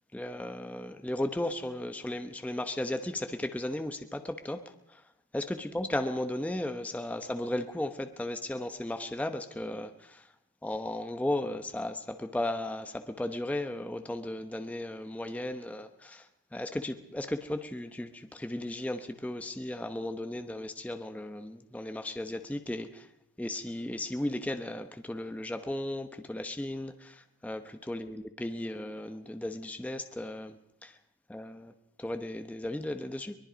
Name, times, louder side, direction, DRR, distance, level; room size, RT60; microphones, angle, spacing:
voice 1, 0.1-4.6 4.9-5.0 5.3-10.3 10.6-23.1 23.4-31.0 31.3-31.7 32.0-33.4, left 1 dB, 5° left, 8 dB, 1.0 m, -35 dB
23.5 x 21.5 x 5.1 m, 0.80 s
wide cardioid pair, 150°, 39 cm